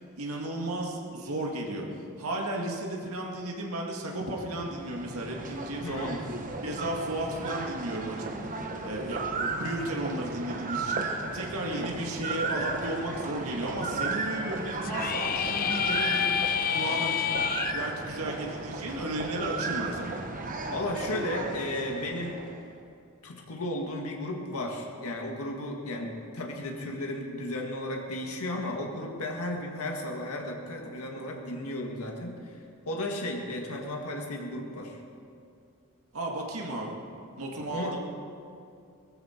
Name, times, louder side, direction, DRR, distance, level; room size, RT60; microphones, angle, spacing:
voice 1, 0.2-1.8 2.2-6.1 6.6-8.3 8.8-11.0 11.3-16.3 16.7-17.3 17.6-20.2 36.1-37.0 37.4-38.0, right 1 dB, 70° right, -1 dB, 1.9 m, -34 dB
sound 1, 4.4-22.7, right 3 dB, 40° right, 1.2 m, -35 dB
voice 2, 5.8-6.3 11.7-11.9 20.7-22.4 23.2-32.6 32.9-35.0 37.6-38.0, left 1 dB, 75° left, 0 dB, 1.9 m, -34 dB
sound 2, 14.8-17.7, left 8 dB, 40° left, 0.5 m, -28 dB
19.0 x 15.0 x 4.5 m, 2.5 s
head